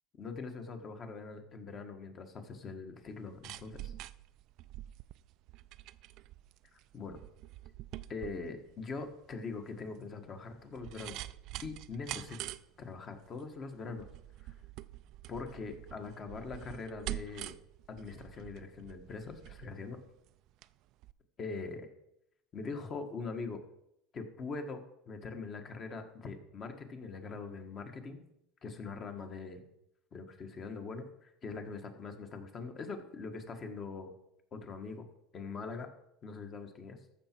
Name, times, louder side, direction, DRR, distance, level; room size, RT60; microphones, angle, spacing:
voice 1, 0.1-3.9 6.7-7.2 8.1-11.2 11.6-12.5 12.8-14.1 14.4-14.5 15.3-17.5 17.9-20.0 21.4-21.9 22.5-23.6 24.1-24.8 25.1-28.2 28.6-29.6 30.1-34.1 34.5-35.0 35.3-35.9 36.2-37.0, left 4 dB, 30° left, 6 dB, 1.4 m, -42 dB
sound 1, 3.1-20.7 21.0-21.1, right 15 dB, 55° right, 0.3 m, -46 dB
14.0 x 6.0 x 4.5 m, 0.80 s
cardioid pair, 140°, 0 cm